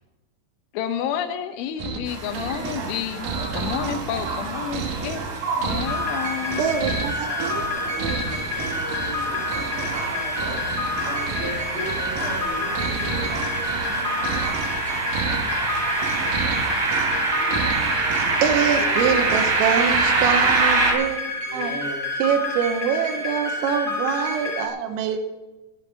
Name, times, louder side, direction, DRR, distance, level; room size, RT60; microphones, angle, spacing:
voice 1, 0.7-5.2 5.6-6.6, left 9 dB, 75° left, 8 dB, 3.2 m, -30 dB
sound 1, 1.8-20.6, right 5 dB, 65° right, 1.9 m, -32 dB
sound 2, 2.1-20.9, right 3 dB, 45° right, 3.6 m, -26 dB
sound 3, 5.9-24.7, left 2 dB, 35° left, 2.3 m, -29 dB
voice 2, 6.6-7.6 18.2-21.2 21.5-21.7 22.2-25.2, right 7 dB, 85° right, 3 dB, 3.7 m, -24 dB
voice 3, 7.6-10.6 11.0-15.0 15.3-15.4 16.2-16.3 17.1-18.0 18.5-19.2 21.4-22.1, right 1 dB, 15° left, -2 dB, 3.2 m, -37 dB
13.5 x 9.7 x 6.7 m, 1.1 s
omnidirectional pair, 5.9 m